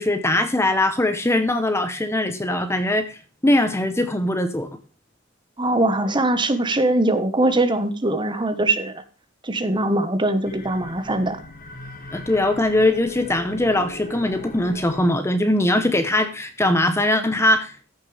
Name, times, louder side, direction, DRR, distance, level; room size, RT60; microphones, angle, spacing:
voice 1, 0.0-4.7 12.1-17.9, left 1 dB, 15° left, 9 dB, 0.8 m, -21 dB
voice 2, 5.6-8.9 9.4-11.4, right 2 dB, 25° right, 9 dB, 1.2 m, -21 dB
sound 1, 10.4-15.4, left 2 dB, 45° left, 2.0 m, -39 dB
14.5 x 6.7 x 3.3 m, 0.37 s
head